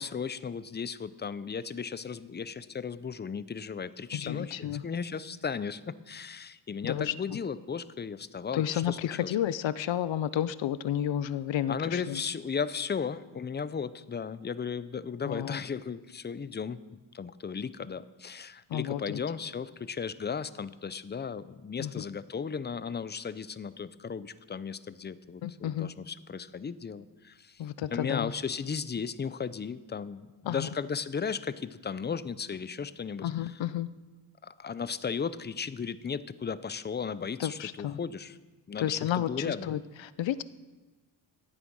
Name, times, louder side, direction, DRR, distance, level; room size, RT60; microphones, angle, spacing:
voice 1, 0.0-9.3 11.7-16.8 17.1-27.6 27.9-33.3 34.4-38.4 38.7-39.8, left 6 dB, 25° left, 16 dB, 0.5 m, -35 dB
voice 2, 4.1-4.8 6.8-7.4 8.5-12.2 15.3-15.6 18.7-19.2 21.8-21.9 25.4-25.9 27.6-28.3 30.5-30.7 33.2-33.9 37.4-38.0 38.8-40.4, left 11 dB, 70° left, 17 dB, 0.6 m, -31 dB
13.5 x 9.0 x 6.3 m, 1.2 s
cardioid pair, 100°, 47 cm